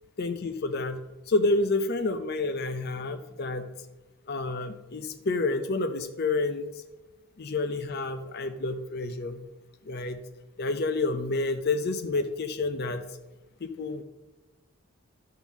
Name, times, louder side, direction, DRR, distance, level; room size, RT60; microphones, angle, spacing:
voice 1, 0.2-1.0 1.3-3.7 4.3-6.8 7.4-9.4 9.9-10.2 10.6-13.1 13.6-14.0, left 3 dB, 45° left, 7 dB, 0.5 m, -29 dB
11.0 x 3.7 x 7.2 m, 1.1 s
head